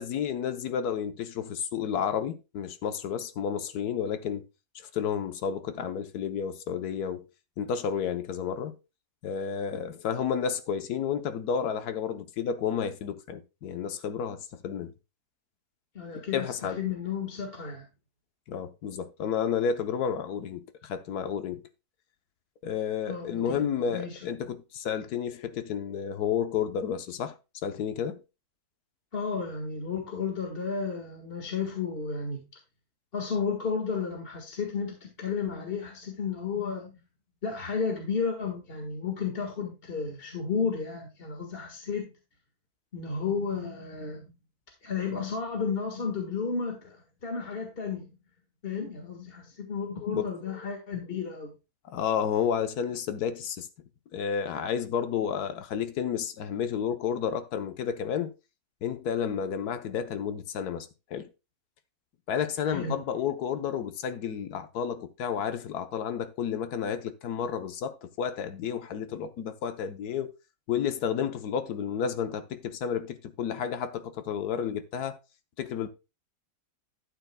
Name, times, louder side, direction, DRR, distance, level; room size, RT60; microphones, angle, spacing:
voice 1, 0.0-4.4 4.7-7.2 7.6-8.7 9.2-14.9 16.1-16.8 18.5-21.6 22.6-27.4 27.6-28.2 50.1-50.2 51.9-53.7 54.1-58.3 58.8-61.3 62.3-70.3 70.7-75.2 75.6-75.9, left 8 dB, 85° left, 1.4 m, -31 dB
voice 2, 16.0-17.9 23.1-24.2 29.1-32.4 33.1-37.0 37.4-42.1 42.9-44.3 44.8-48.2 48.6-51.5 62.7-63.0, left 5 dB, 40° left, 1.7 m, -33 dB
12.0 x 9.2 x 2.2 m
omnidirectional pair, 1.6 m